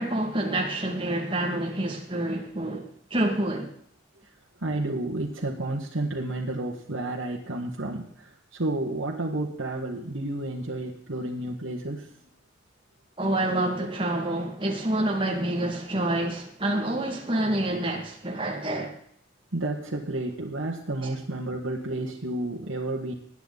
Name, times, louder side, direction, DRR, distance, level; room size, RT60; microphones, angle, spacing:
voice 1, 0.0-3.7 13.2-19.0 21.0-21.1, right 1 dB, 25° right, 2.1 m, -27 dB
voice 2, 4.6-12.1 19.5-23.1, right 2 dB, 85° right, 1.7 m, -31 dB
20.0 x 9.2 x 4.0 m
head